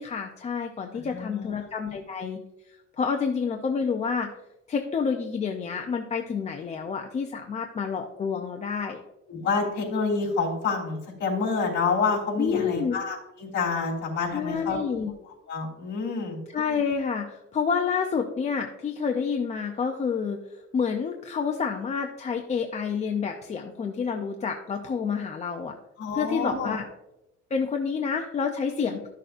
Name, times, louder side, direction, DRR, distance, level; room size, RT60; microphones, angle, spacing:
voice 1, 0.0-2.4 3.0-4.3 4.7-9.0 12.4-13.0 14.3-15.1 16.5-20.4 20.7-25.7 26.1-26.8 27.5-29.1, left 6 dB, 25° left, 3 dB, 0.5 m, -28 dB
voice 2, 0.9-2.0 9.3-14.8 15.2-16.4 26.0-26.8, left 4 dB, 40° left, -3 dB, 3.3 m, -28 dB
12.5 x 6.6 x 2.5 m, 0.94 s
cardioid pair, 160°, 30 cm